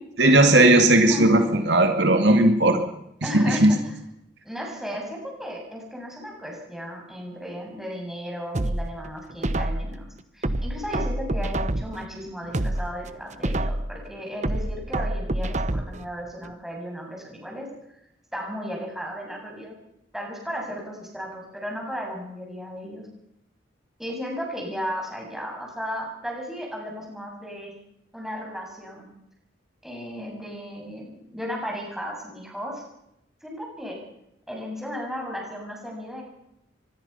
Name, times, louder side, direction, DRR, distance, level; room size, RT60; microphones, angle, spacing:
voice 1, 0.2-2.8 3.3-3.7, right 1 dB, 65° right, 5 dB, 2.4 m, -17 dB
voice 2, 1.1-1.7 3.2-3.9 4.4-10.0 10.3-17.7 18.3-19.7 20.1-23.0 24.0-27.7 28.1-29.0 29.8-32.8 33.4-34.0 34.5-36.2, equal, ahead, -1 dB, 7.3 m, -35 dB
sound 1, 8.5-10.0 10.4-12.0 12.4-14.0 14.4-16.0 16.4-16.5, right 1 dB, 40° right, 1.0 m, -27 dB
24.5 x 21.0 x 5.8 m, 0.80 s
head